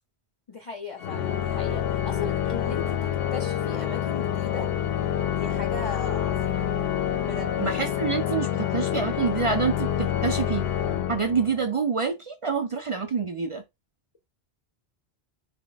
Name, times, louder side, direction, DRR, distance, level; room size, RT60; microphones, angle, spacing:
voice 1, 0.5-4.7 5.3-6.7 7.2-7.6, left 5 dB, 40° left, 0.5 m, -37 dB
Organ, 1.0-11.8, left 10 dB, 75° left, 0.8 m, -27 dB
voice 2, 7.6-10.7 11.1-13.6, right 5 dB, 55° right, 0.3 m, -27 dB
4.1 x 2.1 x 3.8 m
omnidirectional pair, 1.1 m